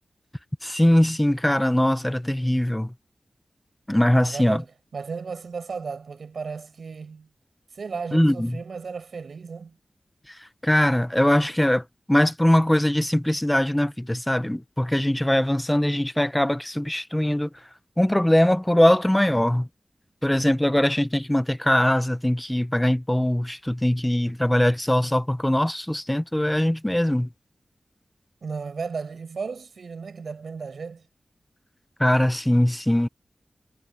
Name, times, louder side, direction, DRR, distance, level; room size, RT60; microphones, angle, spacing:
voice 1, 0.6-2.9 3.9-4.6 8.1-8.6 10.6-17.5 18.0-19.7 20.2-27.3 32.0-33.1, left 1 dB, 10° left, 1.1 m, -21 dB
voice 2, 4.1-4.7 4.9-7.3 7.7-9.8 28.4-31.1, right 5 dB, 80° right, 5.3 m, -34 dB
cardioid pair, 45°, 0 cm